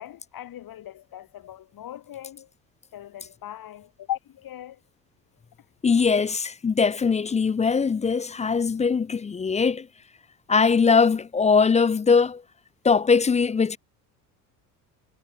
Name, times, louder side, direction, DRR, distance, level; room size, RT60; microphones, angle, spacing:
voice 1, 0.0-2.5 2.9-4.8, left 12 dB, 45° left, 3.6 m, -38 dB
voice 2, 5.8-9.9 10.5-12.4 12.8-13.8, left 5 dB, 15° left, 0.5 m, -21 dB
hypercardioid pair, 65°, 47 cm